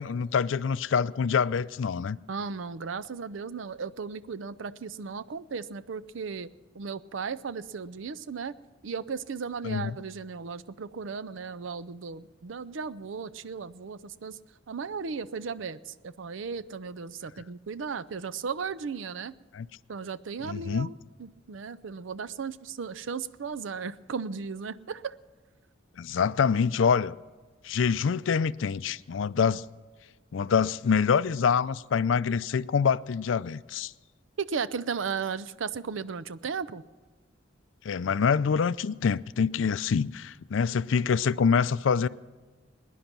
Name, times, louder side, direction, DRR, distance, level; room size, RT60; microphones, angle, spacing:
voice 1, 0.0-2.2 9.6-10.0 19.5-19.7 20.4-20.9 26.0-27.2 27.6-29.6 30.3-33.9 37.8-42.1, left 6 dB, 75° left, 0.4 m, -25 dB
voice 2, 2.3-8.5 8.8-14.4 14.7-19.4 19.9-25.2 34.4-36.8, right 5 dB, 80° right, 0.5 m, -36 dB
21.0 x 10.0 x 5.9 m
head